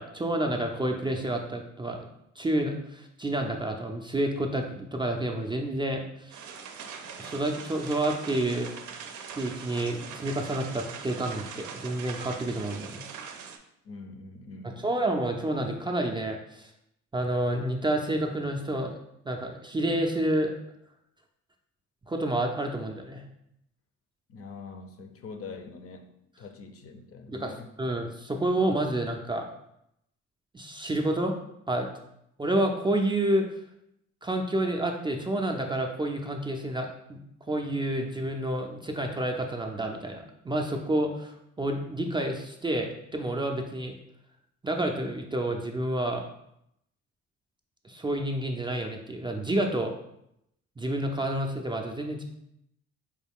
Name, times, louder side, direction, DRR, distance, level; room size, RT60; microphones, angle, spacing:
voice 1, 0.0-2.0 2.4-6.5 7.2-8.7 9.3-13.0 14.6-16.7 17.1-19.0 19.3-20.5 22.1-23.2 27.3-29.5 30.5-31.3 31.7-31.9 32.4-33.5 34.2-37.2 37.5-43.9 44.6-46.3 47.8-49.9 50.8-52.2, right 1 dB, 15° right, 2 dB, 0.4 m, -29 dB
sound 1, 6.3-13.6, right 6 dB, 75° right, 0.5 m, -42 dB
voice 2, 13.8-14.9 24.3-26.1 26.4-27.7, left 4 dB, 50° left, 6 dB, 0.5 m, -44 dB
4.5 x 2.3 x 3.5 m, 0.78 s
cardioid pair, 90°, 30 cm